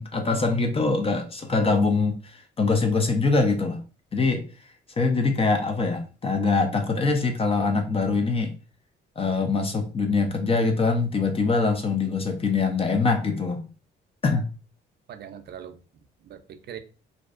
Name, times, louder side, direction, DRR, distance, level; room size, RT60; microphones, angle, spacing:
voice 1, 0.0-3.8 4.1-4.4 5.0-8.5 9.2-13.7 14.2-14.4, left 4 dB, 30° left, 0.4 m, -23 dB
voice 2, 15.1-16.8, right 9 dB, 55° right, 0.4 m, -42 dB
2.5 x 2.0 x 2.4 m
cardioid pair, 90°, 20 cm